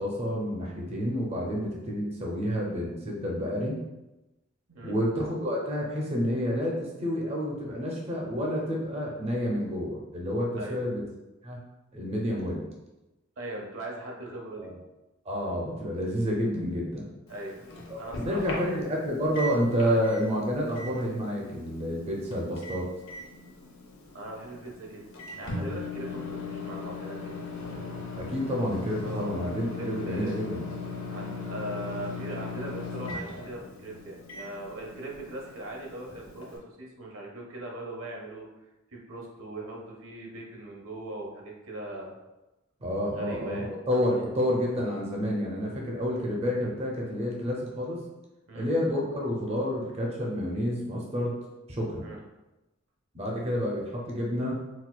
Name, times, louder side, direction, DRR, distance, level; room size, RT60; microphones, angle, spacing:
voice 1, 0.0-3.8 4.8-11.0 11.4-11.6 11.9-12.6 14.6-14.7 15.3-17.1 17.9-22.9 28.1-30.6 42.8-48.0 48.5-51.3 51.7-52.1 53.1-54.5, equal, 30° right, -2 dB, 0.5 m, -29 dB
voice 2, 13.4-14.7 17.3-18.6 19.8-20.0 24.1-25.0 25.4-27.4 29.0-29.3 29.8-30.4 31.1-38.5 38.9-42.1 43.1-44.3 48.5-48.7 52.0-52.2, right 1 dB, 85° right, -1 dB, 0.7 m, -40 dB
Microwave oven, 17.3-36.6, left 3 dB, 90° left, 0.7 m, -39 dB
4.1 x 2.3 x 2.2 m, 1.0 s
head